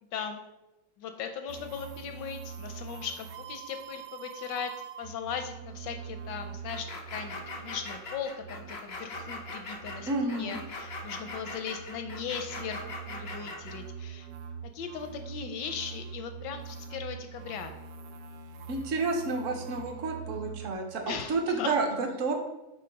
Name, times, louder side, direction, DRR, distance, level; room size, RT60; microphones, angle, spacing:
voice 1, 1.0-4.7 5.0-7.3 7.6-14.3 14.7-17.7 21.1-21.7, left 7 dB, 75° left, 7 dB, 1.0 m, -38 dB
sound 1, 1.5-20.7, right 7 dB, 75° right, 1.4 m, -44 dB
sound 2, 6.7-13.8, left 3 dB, 55° left, 0.6 m, -41 dB
voice 2, 10.1-10.6 18.7-22.3, right 3 dB, 60° right, 3 dB, 0.8 m, -30 dB
5.7 x 3.9 x 5.2 m, 0.99 s
omnidirectional pair, 2.4 m